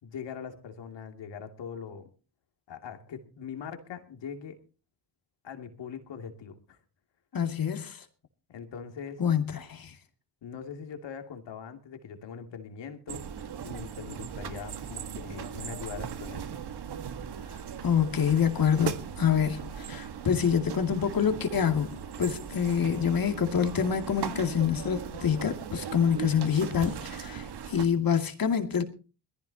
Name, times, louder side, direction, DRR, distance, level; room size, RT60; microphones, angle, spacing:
voice 1, 0.0-2.1 2.7-4.6 5.4-6.8 8.5-9.2 10.4-13.3 13.6-16.5, left 7 dB, 65° left, 2.7 m, -41 dB
voice 2, 7.3-8.0 9.2-9.9 17.8-21.9 22.2-28.8, left 7 dB, 50° left, 2.5 m, -26 dB
sound 1, 13.1-27.9, right 8 dB, 55° right, 1.7 m, -38 dB
21.5 x 15.5 x 2.9 m
supercardioid pair, 50°, 46 cm